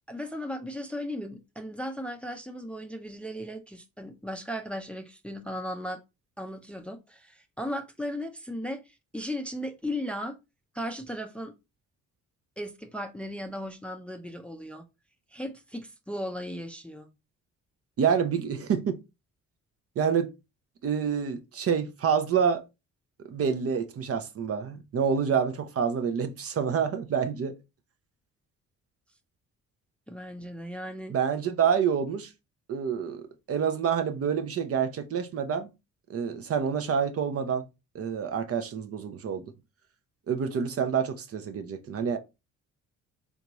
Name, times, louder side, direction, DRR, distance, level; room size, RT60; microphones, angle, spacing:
voice 1, 0.1-6.0 6.4-10.4 10.7-11.5 12.6-14.9 15.3-17.1 30.1-31.1, equal, 5° left, 0.5 m, -36 dB
voice 2, 18.0-19.0 20.0-20.3 20.8-22.6 23.2-27.6 31.1-32.3 32.7-35.7 36.1-37.6 37.9-39.5 40.3-42.2, right 7 dB, 50° right, 0.6 m, -27 dB
3.5 x 2.7 x 2.9 m
cardioid pair, 90°, 30 cm